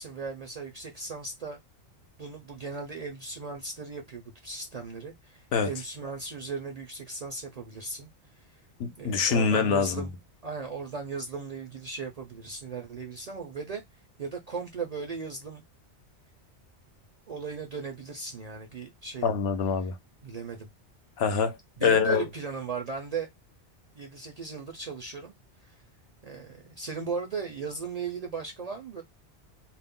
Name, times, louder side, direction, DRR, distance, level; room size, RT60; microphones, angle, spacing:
voice 1, 0.0-1.6 2.2-8.6 9.0-13.8 14.2-15.6 17.3-19.3 20.2-20.7 21.8-23.3 23.9-25.3 25.6-25.7 26.2-29.0, right 5 dB, 50° right, 0.5 m, -37 dB
voice 2, 8.8-10.0 19.2-19.9 21.2-21.6 21.8-22.2, left 6 dB, 70° left, 0.8 m, -24 dB
2.4 x 2.1 x 3.5 m
omnidirectional pair, 1.2 m